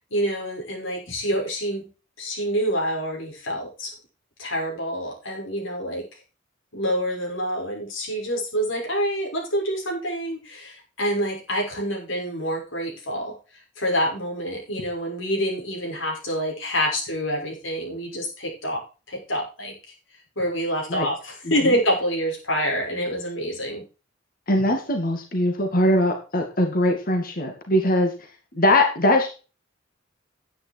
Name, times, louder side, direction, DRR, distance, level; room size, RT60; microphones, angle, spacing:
voice 1, 0.1-1.9 2.2-3.9 4.4-6.0 6.7-13.3 13.8-18.8 19.1-19.7 20.4-23.8, equal, 85° left, -1 dB, 6.2 m, -27 dB
voice 2, 24.5-28.1 28.5-29.3, left 1 dB, 50° left, 4 dB, 2.3 m, -21 dB
10.5 x 9.5 x 4.7 m, 0.33 s
head